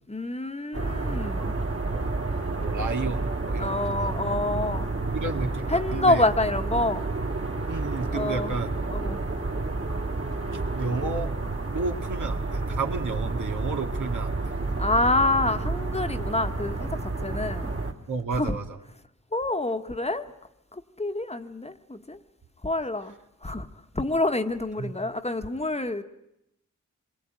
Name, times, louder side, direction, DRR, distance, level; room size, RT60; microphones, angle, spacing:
voice 1, 0.1-1.5 3.6-4.9 5.7-7.0 8.1-8.5 8.9-9.2 14.8-17.7 18.3-18.5 19.3-20.2 20.7-22.2 22.6-23.1 23.4-23.7 23.9-26.0, left 2 dB, 20° left, 8 dB, 1.3 m, -27 dB
sound 1, 0.7-17.9, right 3 dB, 50° right, 2.7 m, -30 dB
voice 2, 2.5-4.2 5.1-6.3 7.7-8.8 10.5-11.3 11.7-14.6 18.1-18.8 24.8-24.9, right 4 dB, 80° right, 4 dB, 2.2 m, -32 dB
26.0 x 22.0 x 9.1 m, 0.83 s
wide cardioid pair, 85°, 30 cm